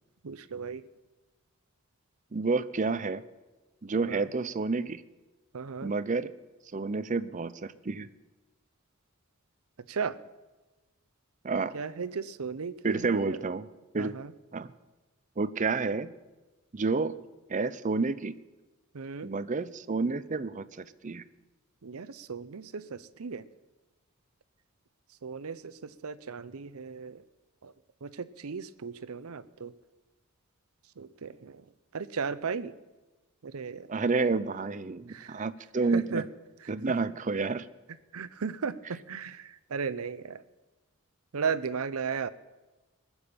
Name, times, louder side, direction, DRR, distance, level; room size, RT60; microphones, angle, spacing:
voice 1, 0.2-0.8 4.1-4.3 5.5-5.9 9.9-10.2 11.7-13.4 14.0-14.3 18.9-19.3 21.8-23.4 25.2-27.2 27.6-27.7 28.0-29.7 31.0-31.6 31.9-32.7 33.4-33.9 35.1-35.4 35.9-36.2 38.1-40.4 41.3-42.3, right 5 dB, 80° right, 16 dB, 0.7 m, -36 dB
voice 2, 2.3-3.2 3.8-5.0 5.8-6.3 6.7-8.1 11.4-11.7 12.8-13.7 13.9-14.2 14.5-14.7 15.4-16.1 16.7-17.1 17.5-18.4 19.2-21.2 33.9-36.2 36.7-37.7, right 4 dB, 35° right, 14 dB, 0.5 m, -29 dB
20.0 x 7.2 x 8.7 m, 1.1 s
head